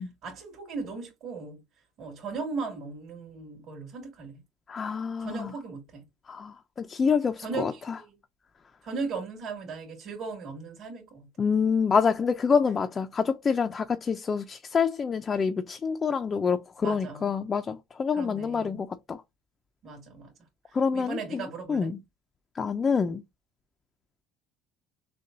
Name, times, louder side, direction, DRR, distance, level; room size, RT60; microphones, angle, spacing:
voice 1, 0.0-1.6 2.0-4.4 5.2-6.1 7.4-8.1 8.8-11.3 16.8-17.3 18.1-18.8 19.8-20.3 20.7-21.9, right 4 dB, 45° right, 2.6 m, -37 dB
voice 2, 4.7-5.5 6.3-7.7 11.4-19.2 20.7-21.4 21.7-22.0 22.6-23.2, left 6 dB, 25° left, 0.5 m, -27 dB
6.5 x 2.3 x 2.7 m
cardioid pair, 135°, 0 cm